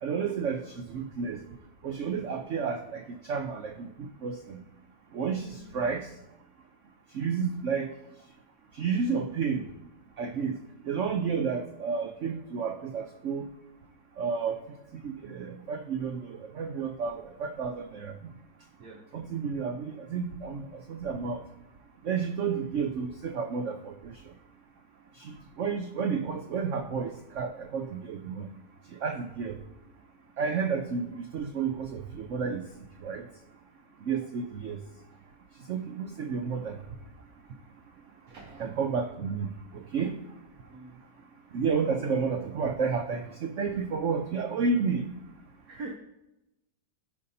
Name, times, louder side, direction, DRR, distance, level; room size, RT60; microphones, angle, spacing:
voice 1, 0.0-1.4 1.8-4.6 5.1-6.1 7.1-7.9 8.7-9.6 10.2-10.6 10.8-13.5 14.2-14.6 14.9-18.1 19.1-21.4 22.0-24.3 25.2-28.5 28.9-29.6 30.4-32.6 33.0-33.3 34.0-34.8 35.7-36.8 38.6-40.2 41.5-45.1, right 5 dB, 80° right, 6 dB, 0.6 m, -31 dB
voice 2, 5.2-6.2 18.8-19.0 35.1-35.3 38.3-38.8 40.7-41.0 45.7-45.9, right 3 dB, 55° right, 1 dB, 1.3 m, -45 dB
14.0 x 5.2 x 2.7 m, 0.92 s
omnidirectional pair, 2.0 m